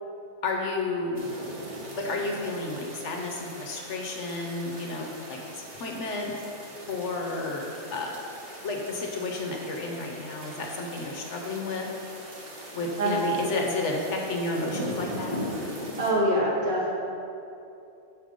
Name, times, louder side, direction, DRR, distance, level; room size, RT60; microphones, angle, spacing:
voice 1, 0.4-1.2 1.9-6.3 6.9-7.6 7.9-8.2 8.6-11.9 12.7-15.4, left 2 dB, 60° left, 1 dB, 0.9 m, -31 dB
sound 1, 1.1-16.1, equal, 30° right, 1.0 m, -40 dB
voice 2, 13.0-13.4 16.0-16.9, right 1 dB, 70° right, -6 dB, 2.0 m, -24 dB
6.5 x 5.1 x 5.1 m, 2.8 s
omnidirectional pair, 1.5 m